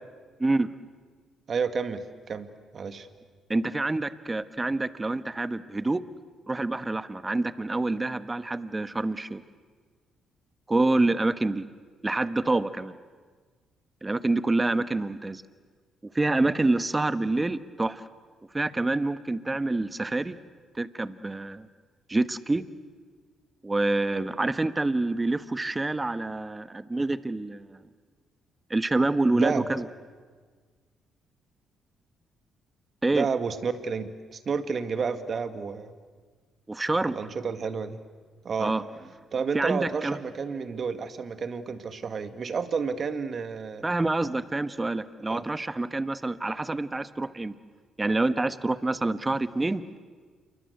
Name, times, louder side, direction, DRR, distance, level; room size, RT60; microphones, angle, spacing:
voice 1, 1.5-2.5 2.7-3.1 29.3-29.7 33.1-35.9 37.1-38.0 38.4-38.7 39.3-43.8 45.3-45.4, right 5 dB, 50° right, 11 dB, 1.9 m, -30 dB
voice 2, 3.5-6.0 6.5-9.4 10.7-11.6 12.0-12.9 14.0-15.4 16.1-18.0 18.5-20.4 20.8-21.7 22.1-22.6 23.6-27.8 28.7-29.9 33.0-33.3 36.7-37.1 38.6-38.8 39.5-40.2 43.8-47.5 48.0-49.8, right 2 dB, 20° right, 14 dB, 1.3 m, -27 dB
28.0 x 23.5 x 8.2 m, 1.5 s
hypercardioid pair, 50°, 0 cm